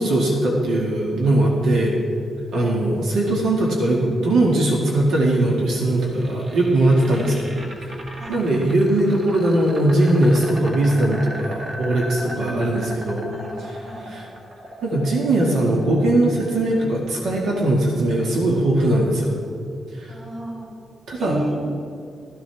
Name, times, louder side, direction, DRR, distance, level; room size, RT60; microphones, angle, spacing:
voice 1, 0.0-2.0 2.5-7.4 8.3-13.3 14.1-14.3 14.8-19.4 20.0-20.1 21.1-21.4, right 1 dB, 90° right, -2 dB, 2.0 m, -20 dB
voice 2, 2.5-2.8 7.0-7.4 8.2-8.5 12.2-12.7 13.3-14.2 20.1-20.7 21.2-21.6, right 1 dB, 30° right, -3 dB, 3.9 m, -33 dB
sound 1, 5.9-17.8, right 1 dB, 45° right, 1.9 m, -37 dB
16.0 x 14.0 x 3.5 m, 2.5 s
cardioid pair, 120°, 0 cm